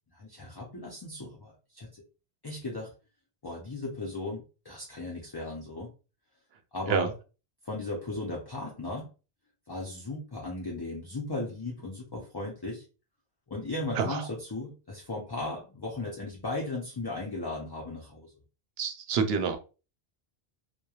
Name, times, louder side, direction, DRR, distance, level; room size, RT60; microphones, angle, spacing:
voice 1, 0.1-2.0 2.4-2.9 3.4-5.9 6.7-7.1 7.6-9.1 9.7-12.8 13.5-18.3, left 2 dB, 30° left, -3 dB, 0.4 m, -36 dB
voice 2, 18.8-19.6, right 6 dB, 75° right, 6 dB, 0.8 m, -28 dB
3.0 x 2.2 x 2.3 m, 0.32 s
omnidirectional pair, 1.1 m